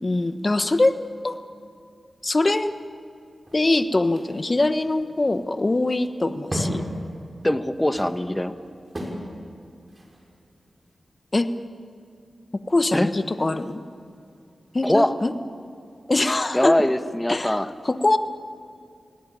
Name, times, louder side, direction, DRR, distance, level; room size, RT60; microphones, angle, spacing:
voice 1, 0.0-1.4 2.2-2.7 3.5-6.8 11.3-11.5 12.7-13.8 14.7-15.3 16.1-16.8 17.3-17.6 17.8-18.2, left 2 dB, 35° left, 10 dB, 1.3 m, -22 dB
sound 1, 3.3-10.9, equal, 35° right, 6.0 m, -36 dB
voice 2, 7.4-8.5 12.9-13.1 14.8-15.2 16.5-17.7, left 1 dB, 15° left, 9 dB, 1.3 m, -22 dB
28.5 x 18.5 x 8.9 m, 2.4 s
cardioid pair, 50°, 0 cm